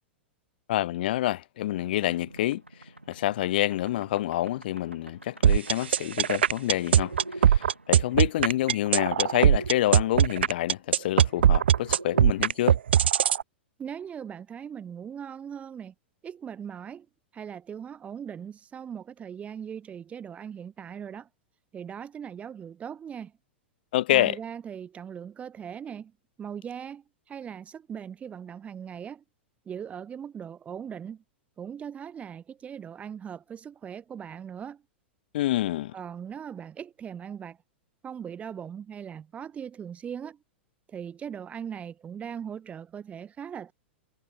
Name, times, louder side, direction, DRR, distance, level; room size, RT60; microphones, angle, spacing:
voice 1, 0.7-2.6 3.1-12.8 23.9-24.4 35.3-35.9, left 14 dB, 55° left, 1.1 m, -27 dB
sound 1, 1.8-9.7 11.0-12.3, right 1 dB, 90° right, 6.4 m, -46 dB
sound 2, 5.4-13.4, right 9 dB, 65° right, 0.5 m, -20 dB
voice 2, 13.8-15.9 16.2-17.1 17.3-21.3 21.7-23.3 24.1-26.1 26.4-29.2 29.6-31.2 31.6-34.8 35.9-37.6 38.0-40.4 40.9-43.7, right 8 dB, 20° right, 7.7 m, -39 dB
figure-of-eight pair, 100°, 6 cm